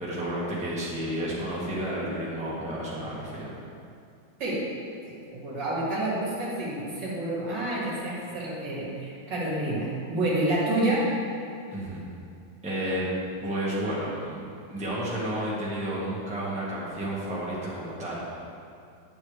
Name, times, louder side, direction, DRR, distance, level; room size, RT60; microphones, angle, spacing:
voice 1, 0.0-3.5 11.7-12.0 12.6-13.1 13.4-14.4 14.7-18.2, right 1 dB, 5° right, -7 dB, 1.3 m, -31 dB
voice 2, 5.0-11.0, right 1 dB, 75° right, -7 dB, 2.8 m, -29 dB
9.6 x 7.2 x 3.3 m, 2.5 s
omnidirectional pair, 2.0 m